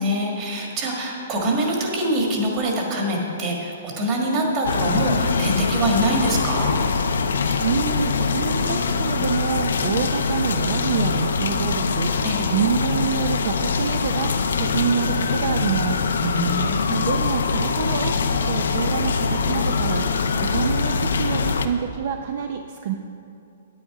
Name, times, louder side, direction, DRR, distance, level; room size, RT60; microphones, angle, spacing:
voice 1, 0.0-6.7 12.2-12.5 16.2-17.0, right 1 dB, 25° right, -1 dB, 1.6 m, -24 dB
sound 1, 4.6-21.7, left 5 dB, 90° left, 0.6 m, -23 dB
voice 2, 7.6-12.3 12.5-16.0 17.1-22.9, right 7 dB, 50° right, 5 dB, 0.5 m, -27 dB
9.1 x 8.7 x 4.8 m, 2.6 s
hypercardioid pair, 160°, 0 cm